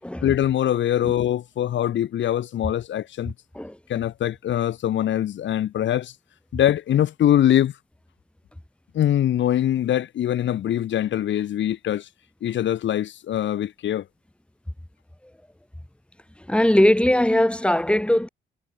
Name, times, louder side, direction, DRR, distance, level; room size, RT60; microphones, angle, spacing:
voice 1, 0.2-3.3 3.9-6.1 6.5-7.7 8.9-12.1 12.4-14.0, left 11 dB, 70° left, 2.6 m, -23 dB
voice 2, 16.5-18.3, left 1 dB, 5° left, 3.9 m, -19 dB
cardioid pair, 90°, 20 cm